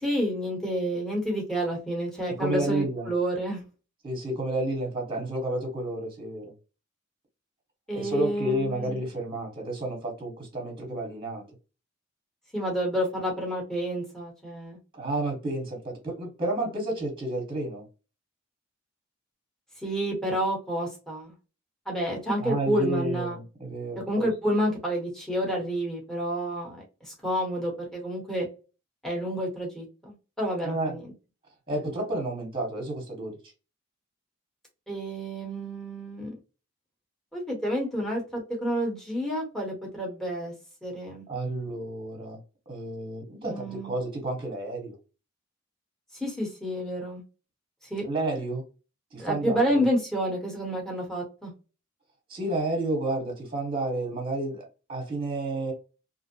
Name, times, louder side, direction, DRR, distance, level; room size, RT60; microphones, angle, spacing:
voice 1, 0.0-3.6 7.9-9.0 12.5-14.8 19.8-21.3 21.9-23.4 24.1-28.5 29.0-31.0 34.9-36.3 37.3-40.5 40.8-41.2 43.4-43.9 46.1-47.2 47.9-48.1 49.2-51.5, equal, ahead, 0.9 m, -29 dB
voice 2, 2.4-3.1 4.0-6.5 7.9-11.4 14.9-17.9 22.4-24.3 30.6-31.0 31.7-33.4 41.3-42.4 42.7-45.0 48.0-48.6 49.1-49.8 52.3-55.7, right 2 dB, 25° right, 1.0 m, -31 dB
2.5 x 2.0 x 2.7 m
head